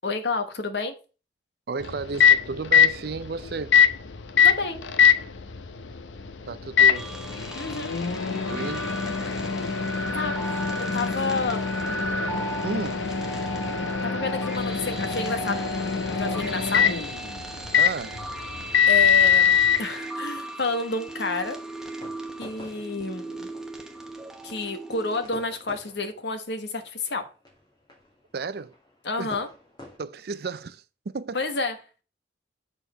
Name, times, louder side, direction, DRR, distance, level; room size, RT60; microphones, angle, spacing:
voice 1, 0.0-0.9 4.4-4.8 7.5-8.0 10.1-10.3 10.8-11.7 14.0-15.6 16.2-17.0 18.9-21.6 22.4-23.5 24.4-27.3 29.0-29.5 31.3-31.8, left 3 dB, 65° left, 1.2 m, -30 dB
voice 2, 1.7-3.8 6.5-7.1 8.5-8.9 12.6-13.1 17.8-18.2 28.3-28.7 29.2-29.4 30.0-31.4, right 4 dB, 55° right, 0.5 m, -33 dB
Microwave oven, 1.8-19.8, left 7 dB, 80° left, 0.7 m, -23 dB
sound 1, 6.9-25.2, right 2 dB, 5° right, 0.9 m, -37 dB
sound 2, 21.5-30.0, left 1 dB, 25° left, 2.3 m, -50 dB
7.0 x 4.2 x 5.8 m
head